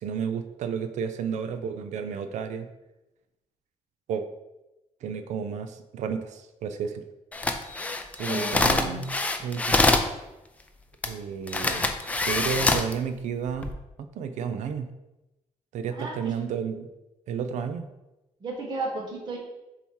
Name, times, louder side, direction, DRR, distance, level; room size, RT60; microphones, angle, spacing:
voice 1, 0.0-2.7 4.1-4.2 5.0-7.0 8.2-9.1 9.4-9.8 11.0-11.9 12.3-13.7 14.2-14.9 15.7-16.9 17.3-17.9, right 6 dB, 80° right, 9 dB, 0.5 m, -31 dB
sound 1, 7.3-10.1 11.0-11.1 11.5-12.9 13.5-13.7, left 2 dB, 10° left, 0.4 m, -24 dB
voice 2, 8.2-9.1 15.9-16.3 18.4-19.4, right 2 dB, 35° right, -2 dB, 1.3 m, -34 dB
6.9 x 2.9 x 4.6 m, 0.97 s
cardioid pair, 170°, 12 cm